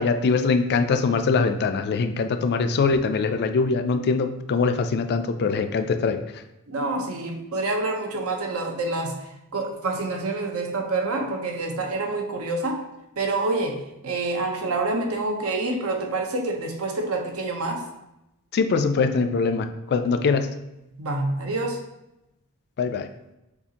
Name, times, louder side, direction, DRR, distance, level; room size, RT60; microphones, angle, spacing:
voice 1, 0.0-6.2 18.5-20.5 22.8-23.1, left 4 dB, 50° left, 9 dB, 0.3 m, -23 dB
voice 2, 6.7-12.8 13.2-17.9 21.0-21.8, right 2 dB, 70° right, 3 dB, 0.8 m, -27 dB
6.8 x 2.4 x 2.8 m, 0.92 s
head